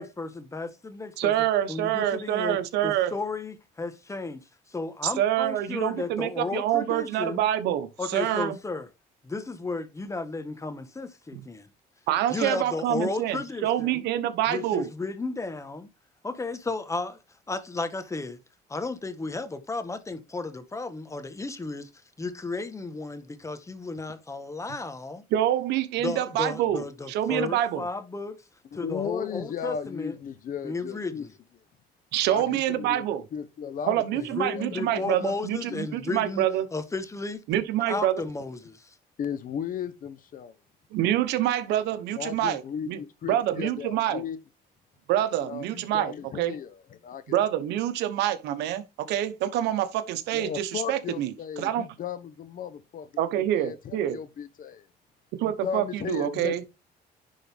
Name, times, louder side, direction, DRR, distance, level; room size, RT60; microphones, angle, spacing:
voice 1, 0.0-1.3 1.7-2.6 2.8-4.4 4.7-7.4 8.0-8.9 9.2-11.7 12.3-14.1 14.5-15.9 16.2-17.2 17.5-18.4 18.7-21.9 22.2-25.2 26.0-28.4 28.7-30.1 30.6-31.3 32.5-32.6 34.3-36.4 36.7-37.4 37.9-38.9, left 3 dB, 15° left, 1.2 m, -33 dB
voice 2, 1.2-3.1 5.0-8.6 11.3-11.4 12.1-14.9 25.3-27.8 32.1-33.2 33.9-36.7 37.5-38.2 40.9-43.0 43.3-44.2 45.1-46.5 47.3-51.3 51.6-51.8 53.2-54.2 55.4-56.6, right 12 dB, 85° right, 1.0 m, -26 dB
voice 3, 28.7-31.3 32.3-33.0 33.3-35.1 35.7-35.8 39.2-40.5 42.1-44.4 45.4-47.2 50.3-53.1 53.5-54.9 55.6-56.5, left 8 dB, 55° left, 1.0 m, -35 dB
10.5 x 3.9 x 3.5 m
cardioid pair, 110°, 17 cm